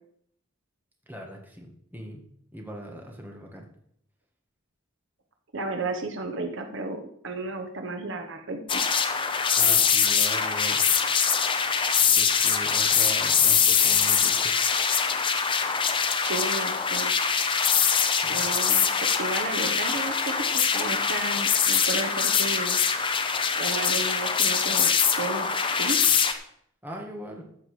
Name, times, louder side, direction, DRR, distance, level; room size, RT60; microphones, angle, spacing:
voice 1, 1.1-2.3 2.5-3.6 9.6-10.8 12.1-14.5 18.2-18.5 26.8-27.4, equal, 10° right, 0 dB, 1.8 m, -40 dB
voice 2, 5.5-8.8 16.2-17.1 18.3-22.8 23.5-25.5 25.8-26.0, right 3 dB, 60° right, 5 dB, 1.2 m, -33 dB
sound 1, 8.7-26.3, left 6 dB, 25° left, 0.8 m, -23 dB
14.0 x 7.3 x 5.0 m, 0.69 s
head